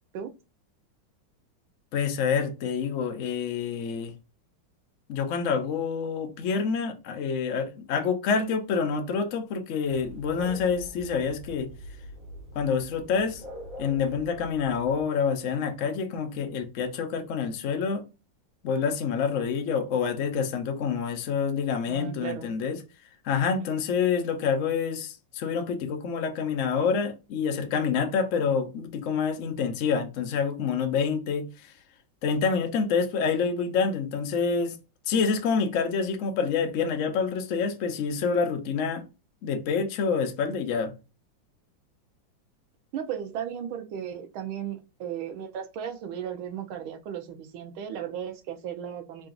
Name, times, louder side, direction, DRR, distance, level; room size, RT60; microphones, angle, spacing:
voice 1, 1.9-4.1 5.1-11.7 12.5-13.4 13.8-18.0 18.6-22.8 23.2-31.5 32.2-34.8 35.1-39.0 39.4-40.9, left 6 dB, 85° left, 0.6 m, -27 dB
sound 1, 9.9-15.1, equal, 65° right, 1.8 m, -44 dB
voice 2, 21.9-22.5 23.6-23.9 42.9-49.3, right 9 dB, 90° right, 1.5 m, -36 dB
3.8 x 2.5 x 3.7 m
omnidirectional pair, 2.2 m